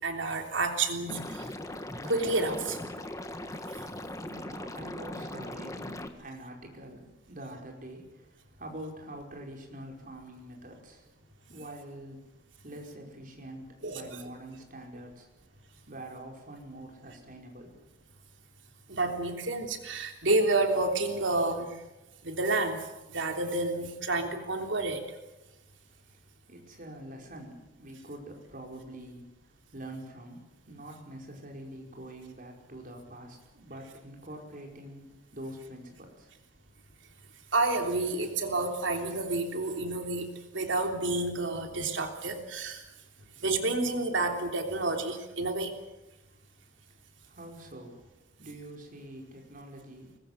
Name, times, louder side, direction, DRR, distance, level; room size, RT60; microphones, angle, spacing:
voice 1, 0.0-1.5 2.0-2.8 13.8-14.0 18.9-21.7 22.2-25.0 37.5-40.3 40.5-42.8 43.4-45.7, right 2 dB, 90° right, 4 dB, 3.3 m, -29 dB
Liquid, 1.1-6.1, left 1 dB, 15° left, 1.6 m, -39 dB
voice 2, 4.3-11.1 11.5-12.2 12.6-15.3 15.9-17.8 26.5-36.3 46.6-46.7 47.2-48.0 48.4-50.2, right 1 dB, 45° right, 1 dB, 5.2 m, -45 dB
23.5 x 20.5 x 8.1 m, 1.0 s
head